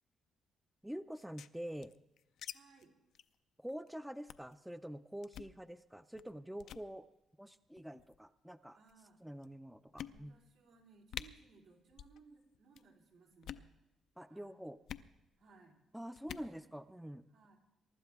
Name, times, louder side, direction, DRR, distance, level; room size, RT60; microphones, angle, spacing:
voice 1, 0.8-1.9 3.6-7.1 7.4-8.8 9.2-10.4 14.2-14.8 15.9-17.2, equal, 5° right, 11 dB, 0.5 m, -46 dB
sound 1, 1.1-2.5 2.8-2.9 3.1-3.3 3.7-3.9 4.3-4.5 5.2-5.5 6.1-6.3 6.6-6.9 7.8-8.2 8.9-9.0 9.4-9.5 10.0-10.5 10.8-10.9 11.1-11.3 11.9-12.2 12.4-12.8 13.3-13.7 14.9-15.1 16.1-16.5, left 10 dB, 75° left, 0.5 m, -47 dB
voice 2, 2.5-2.9 8.7-9.2 10.1-13.7 14.3-14.5 15.4-15.8 16.3-16.7 17.3-17.6, right 4 dB, 85° right, -1 dB, 3.5 m, -63 dB
23.5 x 11.5 x 3.5 m, 0.93 s
cardioid pair, 90°, 0 cm